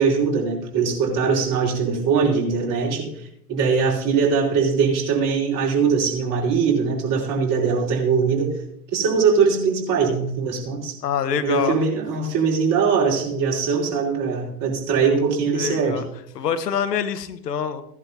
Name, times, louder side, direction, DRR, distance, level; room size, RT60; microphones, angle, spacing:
voice 1, 0.0-3.1 3.5-8.6 8.9-11.0 11.4-16.0, right 5 dB, 40° right, -2 dB, 4.7 m, -21 dB
voice 2, 11.0-11.8 15.5-16.0 16.3-17.8, left 7 dB, 85° left, 11 dB, 1.4 m, -25 dB
17.5 x 11.0 x 2.8 m, 0.71 s
hypercardioid pair, 110°, 47 cm